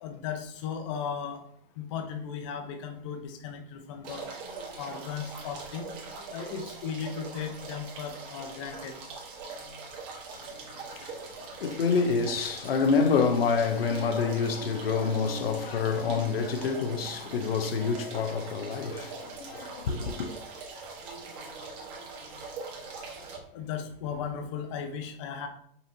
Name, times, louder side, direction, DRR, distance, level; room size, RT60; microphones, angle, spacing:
voice 1, 0.0-1.4 1.8-4.3 4.8-5.9 6.3-9.0 23.5-25.5, left 7 dB, 35° left, 0.5 m, -36 dB
sound 1, 4.0-23.4, right 4 dB, 35° right, 1.1 m, -42 dB
voice 2, 11.6-20.3, left 5 dB, 90° left, 0.7 m, -27 dB
5.5 x 2.9 x 2.7 m
hypercardioid pair, 150°, 29 cm